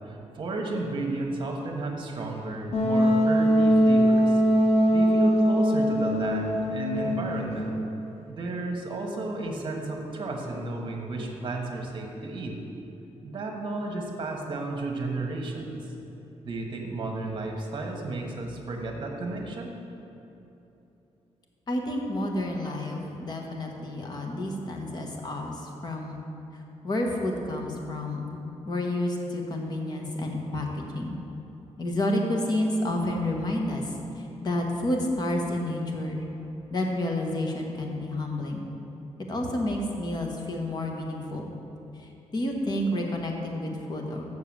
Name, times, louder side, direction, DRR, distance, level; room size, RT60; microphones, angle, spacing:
voice 1, 0.0-4.4 4.9-7.8 8.3-12.6 13.2-15.8 16.4-19.8, right 2 dB, 45° right, 1 dB, 1.2 m, -33 dB
Wind instrument woodwind instrument, 2.7-7.5, equal, 65° left, 1.1 m, -21 dB
voice 2, 21.7-26.2 26.8-28.3 28.6-31.2 31.8-36.2 36.7-38.6 39.3-41.5 41.9-44.2, left 1 dB, 35° left, 1 dB, 1.1 m, -30 dB
7.0 x 6.4 x 7.3 m, 3.0 s
wide cardioid pair, 155°, 12 cm